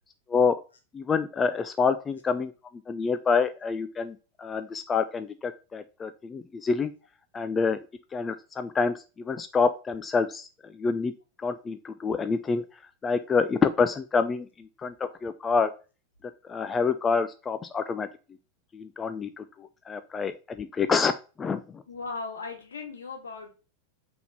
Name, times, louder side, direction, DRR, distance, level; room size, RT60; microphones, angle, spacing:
voice 1, 0.9-2.5 2.9-6.9 7.3-7.8 8.1-10.5 10.7-11.1 11.4-12.6 13.0-15.7 16.5-18.1 18.7-19.4 19.9-21.1 21.4-21.8, left 5 dB, 20° left, 10 dB, 0.4 m, -27 dB
voice 2, 21.9-23.5, left 4 dB, 70° left, 4 dB, 1.7 m, -37 dB
5.8 x 3.7 x 5.4 m, 0.33 s
figure-of-eight pair, 90°, 0 cm